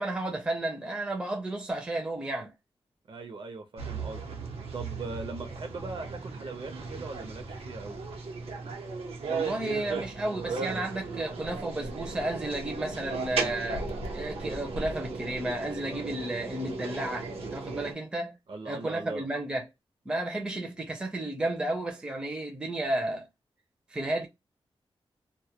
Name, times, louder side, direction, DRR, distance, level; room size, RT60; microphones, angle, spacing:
voice 1, 0.0-2.5 9.3-13.9 14.1-18.4 18.7-19.6 20.1-23.3 23.9-24.3, right 1 dB, 10° right, 0.4 m, -32 dB
voice 2, 3.1-4.4 4.7-8.0 18.5-19.3, right 3 dB, 60° right, 0.6 m, -40 dB
sound 1, 3.8-17.9, right 4 dB, 85° right, 0.8 m, -36 dB
sound 2, 10.9-17.6, left 1 dB, 80° left, 0.5 m, -45 dB
2.1 x 2.1 x 2.8 m
wide cardioid pair, 175°, 10 cm